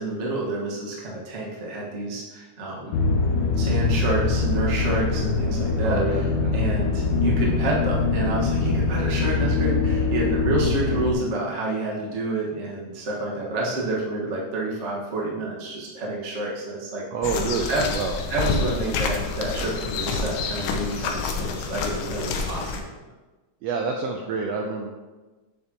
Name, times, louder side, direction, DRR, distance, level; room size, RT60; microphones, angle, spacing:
voice 1, 0.0-2.9 3.5-6.2 6.5-17.0 17.4-17.8 18.3-22.7, right 2 dB, 40° right, -3 dB, 1.1 m, -29 dB
sound 1, 2.9-11.1, left 3 dB, 70° left, 1.9 m, -23 dB
voice 2, 5.8-6.5 17.1-18.1 23.6-24.9, right 4 dB, 80° right, 1 dB, 1.5 m, -28 dB
sound 2, 17.2-22.8, left 4 dB, 85° left, 2.3 m, -28 dB
8.5 x 6.8 x 2.9 m, 1.2 s
omnidirectional pair, 3.5 m